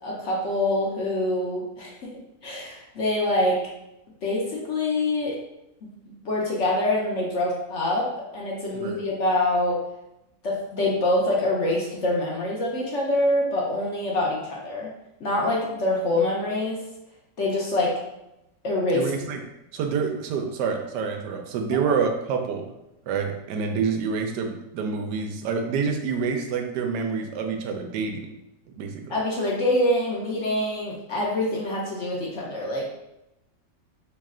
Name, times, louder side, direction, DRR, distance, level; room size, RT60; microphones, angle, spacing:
voice 1, 0.0-3.6 4.2-5.4 6.2-9.8 10.4-14.9 15.2-16.8 17.4-18.0 18.6-19.1 29.1-32.8, left 1 dB, 55° left, -3 dB, 0.9 m, -25 dB
voice 2, 18.9-19.4 19.7-22.7 23.1-28.3 28.7-29.1, right 5 dB, 85° right, 4 dB, 1.2 m, -27 dB
3.2 x 3.1 x 3.6 m, 0.89 s
omnidirectional pair, 1.8 m